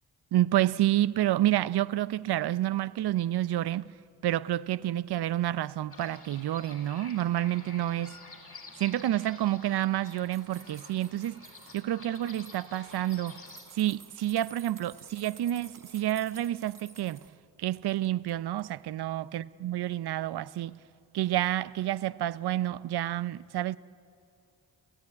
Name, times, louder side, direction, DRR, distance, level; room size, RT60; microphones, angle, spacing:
voice 1, 0.3-3.9 4.2-8.2 8.8-11.4 11.7-13.4 13.7-17.2 17.6-20.8 21.1-23.8, right 13 dB, 70° right, 0.6 m, -29 dB
sound 1, 5.9-13.6, left 3 dB, 35° left, 5.0 m, -50 dB
sound 2, 9.7-11.8 12.1-17.3 17.8-18.3 18.6-18.7, right 5 dB, 50° right, 2.1 m, -53 dB
29.5 x 15.0 x 9.6 m
cardioid pair, 60°, 40 cm